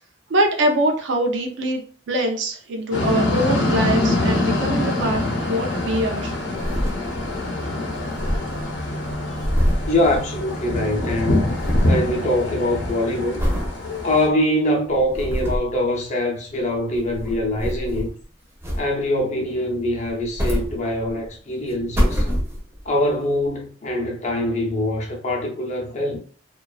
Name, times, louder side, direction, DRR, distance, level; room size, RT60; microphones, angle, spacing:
voice 1, 0.3-1.8 2.1-5.2 5.5-6.3, right 1 dB, 65° right, 0.4 m, -23 dB
sound 1, 2.9-14.3, left 2 dB, 80° left, 0.7 m, -25 dB
sound 2, 6.5-7.5 7.7-7.8 8.0-10.8 11.0-12.0 12.5-12.8 13.4-13.7 14.3-14.4 14.9-15.8 16.8-18.2 18.6-19.2 20.0-21.3 21.7-22.9 23.5-23.6, equal, 10° right, 0.5 m, -25 dB
voice 2, 9.9-11.5 11.8-13.5 14.0-18.1 18.7-22.2 22.9-26.2, left 1 dB, 35° left, 0.5 m, -23 dB
2.4 x 2.2 x 2.3 m
head